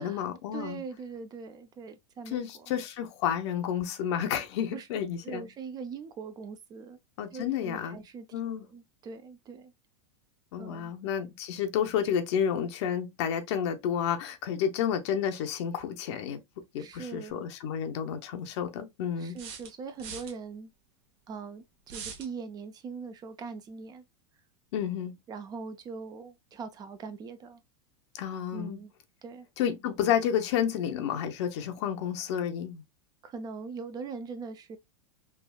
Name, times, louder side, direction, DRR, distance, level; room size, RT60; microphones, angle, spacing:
voice 1, 0.0-0.8 2.3-5.5 7.2-8.0 8.3-8.7 10.5-16.4 16.7-19.4 24.7-25.2 28.1-28.8 29.6-32.8, left 9 dB, 65° left, 0.7 m, -30 dB
voice 2, 0.5-2.7 4.7-4.9 5.2-7.0 7.3-9.7 10.6-10.9 16.8-17.4 19.2-20.7 21.3-24.0 25.3-27.6 28.5-28.9 29.2-29.5 33.2-34.8, right 5 dB, 25° right, 0.4 m, -41 dB
sound 1, 17.3-17.4 19.4-20.3 21.9-22.3, right 6 dB, 60° right, 0.9 m, -41 dB
3.3 x 2.3 x 2.2 m
supercardioid pair, 125°, 16 cm